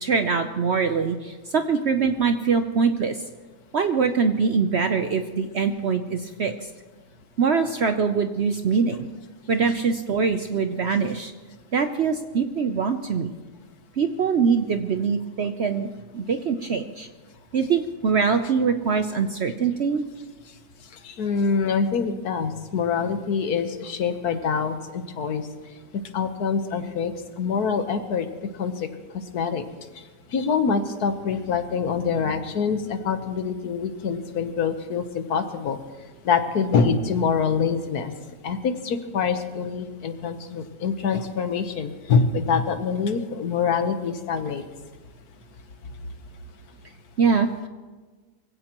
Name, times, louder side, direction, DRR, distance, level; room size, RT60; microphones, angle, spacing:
voice 1, 0.0-3.2 3.7-6.5 7.4-9.1 9.5-11.3 11.7-13.3 14.0-15.9 16.1-17.1 17.5-20.0 47.2-47.5, right 5 dB, 55° right, 7 dB, 0.7 m, -23 dB
voice 2, 20.9-25.5 25.9-28.3 28.5-28.9 29.1-29.7 29.9-35.8 36.2-38.1 38.4-44.6, left 5 dB, 70° left, 8 dB, 1.5 m, -25 dB
23.5 x 16.0 x 3.0 m, 1.4 s
omnidirectional pair, 1.7 m